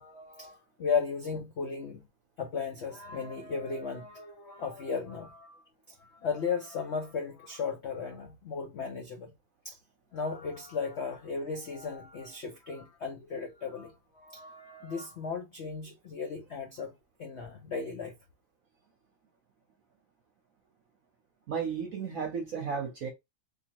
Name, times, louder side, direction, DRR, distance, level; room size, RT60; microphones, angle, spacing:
voice 1, 0.0-2.0 2.4-9.3 9.6-9.8 10.1-16.9 17.2-18.1, left 5 dB, 85° left, 0.5 m, -36 dB
voice 2, 21.5-23.1, right 6 dB, 60° right, 1.0 m, -33 dB
3.8 x 2.7 x 2.8 m
omnidirectional pair, 2.0 m